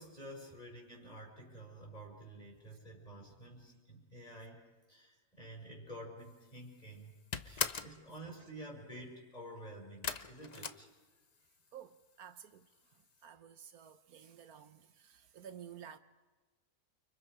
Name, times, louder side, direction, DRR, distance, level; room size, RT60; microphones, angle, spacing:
voice 1, 0.0-7.1 7.4-10.9, right 1 dB, 25° left, 5.5 m, -50 dB
sound 1, 6.3-6.7 7.0-8.0 10.0-11.5 11.8-12.4 12.7-12.8 13.2-13.3, left 6 dB, 40° left, 0.6 m, -39 dB
voice 2, 7.5-7.8 10.5-10.7 11.7-16.0, right 9 dB, 75° right, 1.3 m, -53 dB
30.0 x 25.0 x 4.9 m
omnidirectional pair, 1.6 m